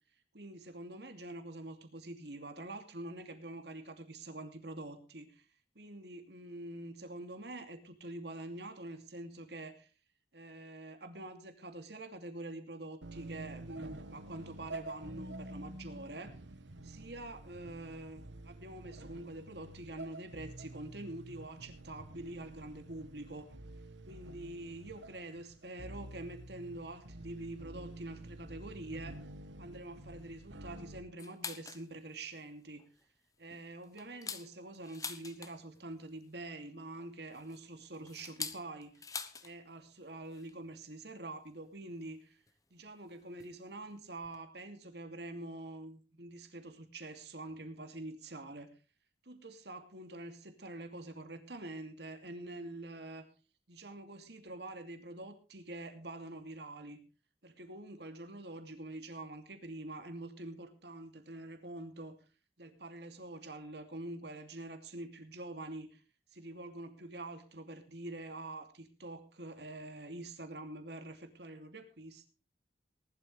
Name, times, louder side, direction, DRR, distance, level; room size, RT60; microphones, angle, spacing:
voice 1, 0.3-5.4 5.7-9.9 10.3-16.4 16.8-23.5 24.1-29.2 29.6-32.9 33.4-38.9 39.4-42.4 42.7-48.7 49.2-53.3 53.7-57.0 57.4-62.2 62.6-66.0 66.3-72.3, right 2 dB, 65° right, 7 dB, 2.7 m, -46 dB
sound 1, 13.0-31.0, right 2 dB, 90° right, 1.6 m, -49 dB
sound 2, 31.2-31.9 32.3-32.4 32.8-33.0 33.5-35.8 37.0-39.5 39.8-39.9 40.2-40.5 41.5-41.6 42.5-42.6 43.4-43.6 43.9-44.0 44.2-44.4, left 5 dB, 20° left, 1.1 m, -44 dB
19.0 x 12.0 x 3.4 m, 0.34 s
head